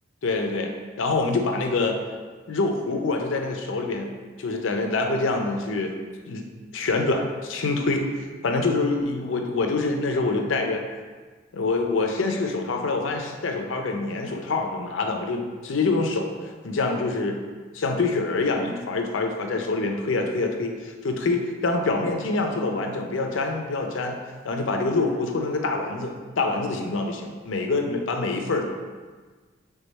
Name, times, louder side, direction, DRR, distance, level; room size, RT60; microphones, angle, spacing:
voice 1, 0.2-0.7 1.0-2.0 2.5-4.1 4.4-5.9 6.3-6.4 6.7-8.0 8.4-10.8 11.5-17.4 17.7-24.2 24.4-28.6, left 3 dB, 75° left, 4 dB, 0.5 m, -25 dB
3.5 x 3.4 x 4.1 m, 1.4 s
head